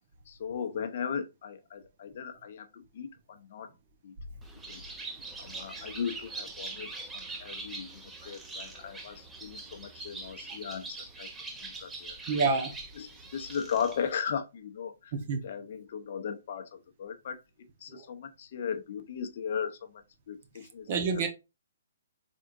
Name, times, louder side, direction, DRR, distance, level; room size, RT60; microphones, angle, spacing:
voice 1, 0.3-3.7 4.0-4.1 4.7-4.8 5.4-11.3 11.6-12.2 12.9-15.1 15.4-17.4 17.8-21.2, left 7 dB, 55° left, 0.6 m, -37 dB
Bird, 4.4-14.1, right 3 dB, 10° right, 0.6 m, -43 dB
voice 2, 12.3-12.7 15.1-15.4 17.9-18.0 20.9-21.3, right 4 dB, 45° right, 0.9 m, -28 dB
3.6 x 3.5 x 2.5 m
hypercardioid pair, 135°, 0 cm